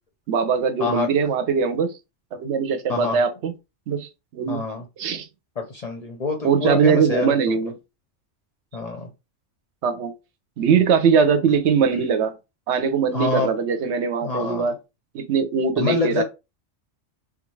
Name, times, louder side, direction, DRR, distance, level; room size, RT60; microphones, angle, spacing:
voice 1, 0.3-1.9 2.3-3.5 3.9-4.6 5.0-5.3 6.4-7.7 9.8-10.1 10.6-12.3 12.7-14.7 15.1-16.2, right 6 dB, 70° right, 0.9 m, -21 dB
voice 2, 4.5-4.8 5.6-7.6 8.7-9.1 11.9-12.0 13.1-13.5 14.2-14.7 15.8-16.2, left 4 dB, 45° left, 0.6 m, -26 dB
3.9 x 2.3 x 3.1 m
omnidirectional pair, 1.2 m